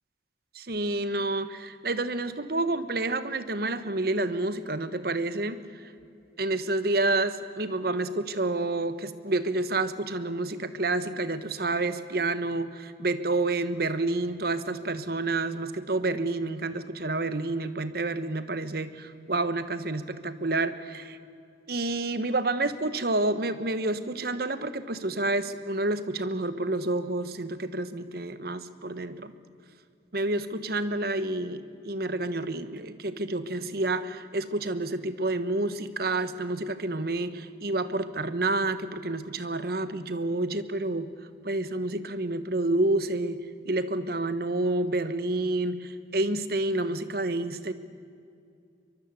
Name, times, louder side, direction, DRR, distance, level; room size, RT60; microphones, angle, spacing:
voice 1, 0.5-5.6 6.4-21.2 21.7-29.3 30.1-41.1 41.4-43.4 43.6-47.7, right 2 dB, 55° right, 12 dB, 1.2 m, -29 dB
23.5 x 23.0 x 8.2 m, 2.4 s
head